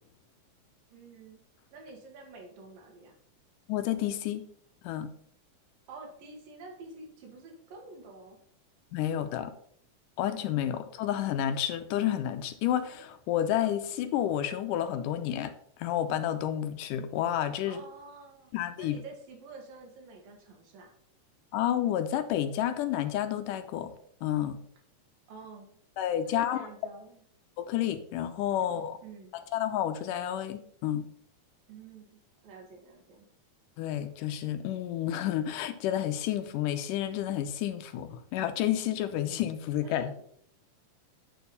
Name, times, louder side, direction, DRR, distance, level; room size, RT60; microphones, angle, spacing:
voice 1, 0.9-1.4 1.7-3.1 5.9-8.4 17.6-18.5 18.8-20.9 25.3-25.7 26.2-27.2 28.6-29.3 31.7-33.3 39.8-40.2, right 3 dB, 90° right, 2 dB, 3.4 m, -48 dB
voice 2, 3.7-4.4 4.8-5.1 8.9-9.5 10.2-15.5 15.8-17.8 18.5-19.0 21.5-23.9 24.2-24.6 26.0-26.6 27.6-29.0 29.3-31.1 33.8-40.1, left 11 dB, 80° left, 9 dB, 2.3 m, -30 dB
9.2 x 4.6 x 5.4 m, 0.63 s
omnidirectional pair, 3.8 m